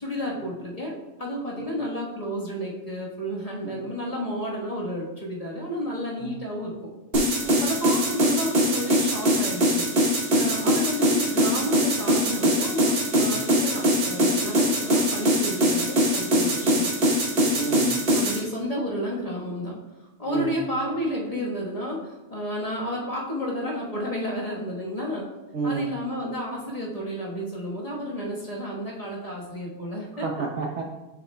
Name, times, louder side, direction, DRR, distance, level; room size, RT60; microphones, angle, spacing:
voice 1, 0.0-6.8 7.6-9.9 10.3-16.9 18.1-25.2 25.6-30.3, equal, 25° left, -5 dB, 1.2 m, -31 dB
sound 1, 7.1-18.4, equal, 45° right, 1.1 m, -22 dB
voice 2, 17.5-18.0 20.3-20.6 25.5-25.9 30.2-30.8, right 4 dB, 60° right, 0 dB, 0.8 m, -30 dB
6.7 x 6.5 x 2.2 m, 1.1 s
omnidirectional pair, 1.6 m